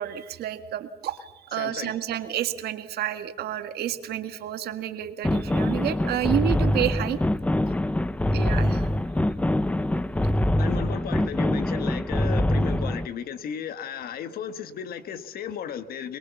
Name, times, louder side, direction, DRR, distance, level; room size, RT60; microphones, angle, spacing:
voice 1, 0.0-7.2 8.3-8.9, right 11 dB, 70° right, 8 dB, 1.8 m, -30 dB
voice 2, 1.6-1.9 10.6-16.2, left 8 dB, 60° left, 11 dB, 1.5 m, -35 dB
sound 1, 5.2-13.1, left 1 dB, 10° left, 0.7 m, -24 dB
23.0 x 22.0 x 7.1 m, 0.99 s
cardioid pair, 110°, 17 cm